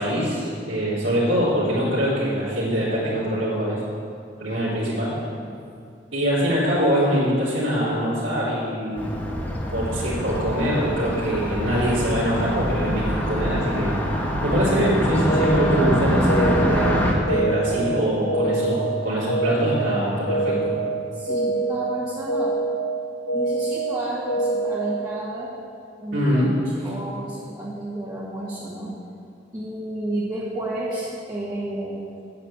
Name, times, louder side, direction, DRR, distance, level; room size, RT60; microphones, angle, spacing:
voice 1, 0.0-3.8 4.4-5.2 6.1-9.1 9.7-14.1 14.4-20.7 26.1-26.5, equal, 70° right, -11 dB, 3.5 m, -23 dB
Car passing by, 9.0-17.1, equal, 10° left, 1.6 m, -24 dB
sound 1, 15.3-15.8 16.3-16.8 17.3-17.8 18.3-18.8 19.3-19.8 20.3-20.8 21.3-21.8 22.3-22.8 23.3-23.8 24.3-24.8, right 2 dB, 60° left, 1.3 m, -24 dB
voice 2, 21.1-22.8 23.3-25.5 26.0-28.9 29.5-32.0, right 1 dB, 20° right, -8 dB, 1.8 m, -31 dB
9.3 x 7.4 x 8.5 m, 2.5 s
head